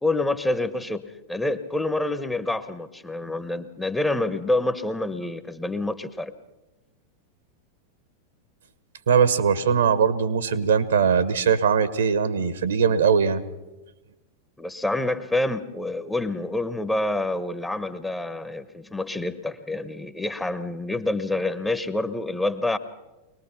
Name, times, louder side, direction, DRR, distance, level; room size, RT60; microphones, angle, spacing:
voice 1, 0.0-6.3 14.6-22.8, left 2 dB, 5° left, 12 dB, 1.0 m, -27 dB
voice 2, 9.1-13.4, right 6 dB, 65° right, 15 dB, 1.3 m, -21 dB
23.5 x 19.5 x 5.8 m, 1.1 s
figure-of-eight pair, 90°, 0 cm